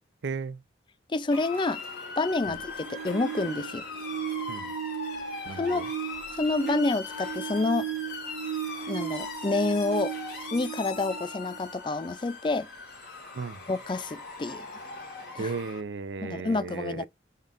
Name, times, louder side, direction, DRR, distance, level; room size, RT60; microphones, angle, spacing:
voice 1, 0.2-0.6 2.5-2.6 4.5-4.7 5.5-5.8 13.3-13.6 15.4-17.1, right 4 dB, 75° right, 0.5 m, -35 dB
voice 2, 1.1-1.8 2.2-3.8 5.5-5.9 6.3-7.9 8.9-10.1 10.5-12.7 13.7-14.7 15.3-15.5 16.2-17.1, left 3 dB, 25° left, 0.4 m, -28 dB
Motor vehicle (road) / Siren, 1.3-15.8, left 3 dB, 55° left, 3.1 m, -40 dB
sound 1, 2.4-12.1 14.4-14.5, right 9 dB, 15° right, 1.5 m, -37 dB
5.4 x 3.9 x 2.5 m
head